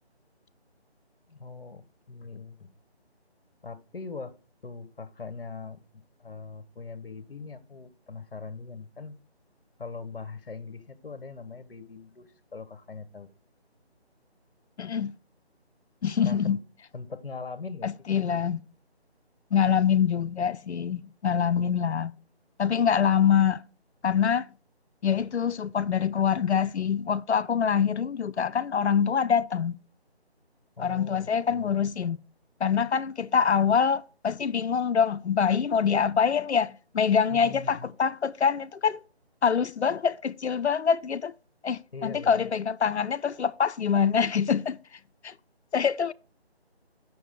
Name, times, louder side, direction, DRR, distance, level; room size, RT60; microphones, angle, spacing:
voice 1, 1.3-2.7 3.6-4.4 4.6-9.2 9.8-13.3 16.2-16.6 16.9-18.4 30.8-31.8 37.3-38.0 41.9-42.5, left 4 dB, 55° left, 1.1 m, -41 dB
voice 2, 14.8-15.1 16.0-16.6 17.8-18.6 19.5-22.1 22.6-23.6 24.0-24.5 25.0-29.8 30.8-32.2 32.6-39.0 39.4-41.3 41.6-44.8 45.2-45.3 45.7-46.1, left 7 dB, 85° left, 0.6 m, -25 dB
7.0 x 6.1 x 3.6 m
figure-of-eight pair, 165°, 33 cm